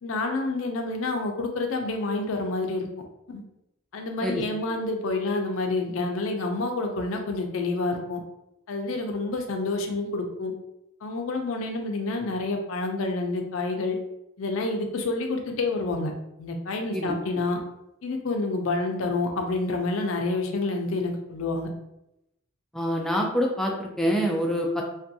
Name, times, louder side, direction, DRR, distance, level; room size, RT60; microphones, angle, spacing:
voice 1, 0.0-2.9 3.3-3.4 3.9-8.2 8.7-10.5 11.0-14.0 14.4-16.1 16.4-17.6 18.0-21.7, left 2 dB, 65° left, 3 dB, 0.5 m, -28 dB
voice 2, 22.7-24.8, equal, ahead, -1 dB, 0.4 m, -26 dB
2.5 x 2.2 x 2.6 m, 0.86 s
head